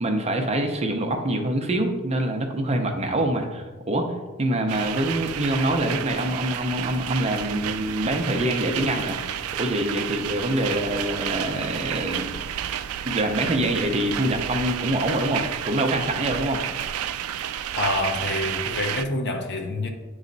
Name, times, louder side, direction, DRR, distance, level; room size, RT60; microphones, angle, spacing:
voice 1, 0.0-9.2 9.6-12.4 13.0-16.6, right 1 dB, 30° right, 0.7 m, -25 dB
sound 1, 4.7-19.1, right 10 dB, 80° right, 0.3 m, -31 dB
voice 2, 17.8-19.9, left 2 dB, 55° left, 0.9 m, -27 dB
9.3 x 3.1 x 3.9 m
head